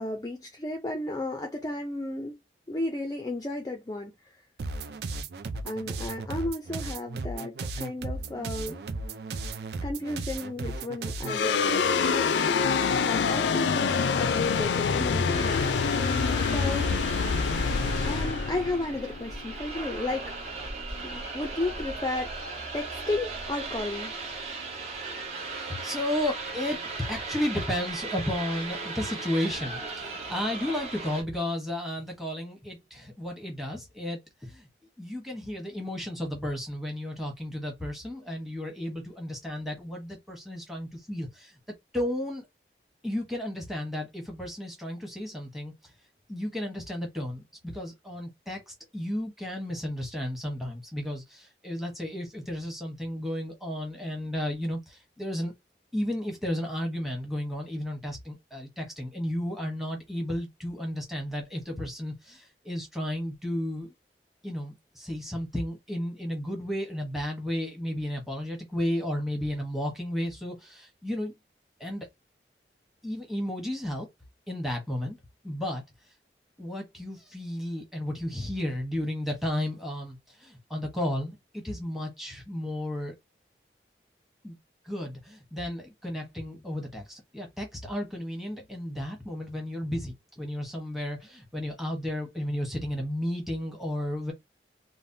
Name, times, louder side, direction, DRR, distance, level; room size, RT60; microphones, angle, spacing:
voice 1, 0.0-2.4 2.7-4.4 5.6-8.8 9.8-12.6 13.0-17.0 18.0-20.4 21.0-22.3 22.7-24.2, left 2 dB, 20° left, 0.4 m, -34 dB
sound 1, 4.6-11.4, right 3 dB, 70° right, 0.4 m, -35 dB
sound 2, 11.3-19.8, left 5 dB, 90° left, 0.4 m, -26 dB
sound 3, 15.3-31.2, right 3 dB, 40° right, 0.8 m, -37 dB
voice 2, 25.5-26.8 27.1-34.7 35.0-41.6 41.9-42.4 43.0-45.7 46.3-55.5 55.9-63.9 64.4-71.3 71.8-72.1 73.0-74.1 74.5-75.2 75.4-75.8 76.6-83.1 84.4-84.6 84.8-94.3, left 1 dB, ahead, 0.9 m, -33 dB
3.2 x 2.0 x 2.6 m
head